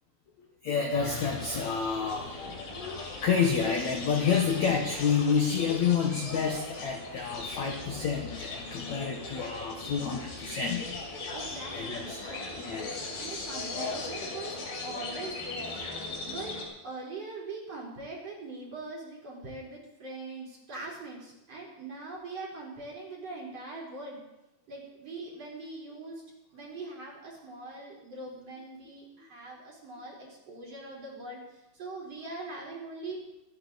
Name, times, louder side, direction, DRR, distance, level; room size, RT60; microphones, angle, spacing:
voice 1, 0.6-2.6 3.2-10.9 11.7-12.2 12.6-13.0, left 6 dB, 90° left, 3 dB, 1.6 m, -29 dB
sound 1, 0.9-16.6, left 3 dB, 55° left, 5.0 m, -38 dB
voice 2, 11.3-12.7 13.2-14.6 14.8-15.7 16.2-16.6 16.8-24.2 24.7-26.2 26.5-30.2 30.5-33.3, right 3 dB, 35° right, -3 dB, 4.8 m, -42 dB
26.5 x 10.0 x 4.1 m, 0.94 s
omnidirectional pair, 5.3 m